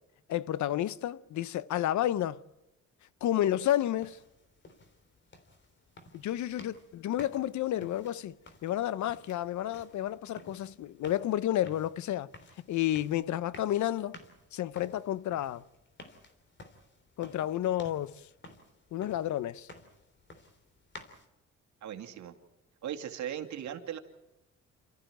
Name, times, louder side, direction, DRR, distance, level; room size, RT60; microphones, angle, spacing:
voice 1, 0.3-2.4 3.2-4.2 6.1-8.3 8.6-12.3 12.7-14.2 14.5-15.6 17.2-18.1 18.9-19.7, left 12 dB, 70° left, 0.8 m, -31 dB
sound 1, 3.6-21.3, left 2 dB, 40° left, 3.3 m, -54 dB
voice 2, 21.8-22.3 22.8-24.0, right 10 dB, 70° right, 2.4 m, -38 dB
28.0 x 14.0 x 9.1 m
cardioid pair, 90°, 30 cm